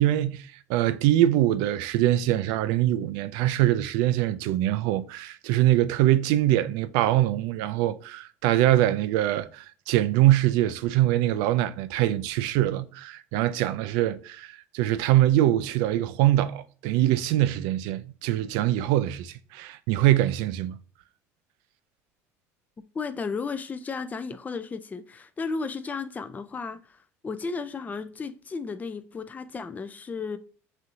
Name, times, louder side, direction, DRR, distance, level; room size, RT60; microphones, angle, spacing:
voice 1, 0.0-20.8, right 14 dB, 70° right, 0.4 m, -23 dB
voice 2, 22.9-30.4, left 4 dB, 20° left, 0.4 m, -34 dB
6.1 x 2.7 x 2.5 m
hypercardioid pair, 75°, 8 cm